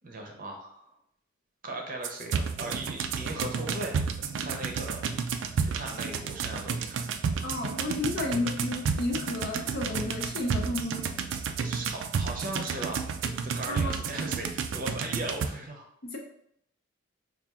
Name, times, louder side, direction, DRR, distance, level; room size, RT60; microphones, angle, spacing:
voice 1, 0.0-0.9 1.6-4.0 4.4-5.0 5.6-7.0 11.6-13.1 13.4-15.9, right 2 dB, 45° right, 2 dB, 0.7 m, -38 dB
sound 1, 2.0-15.5, right 6 dB, 65° right, 0.3 m, -31 dB
voice 2, 7.4-11.1 13.7-14.0 16.0-16.2, left 2 dB, 50° left, 1 dB, 0.6 m, -32 dB
5.6 x 2.4 x 2.4 m, 0.71 s
head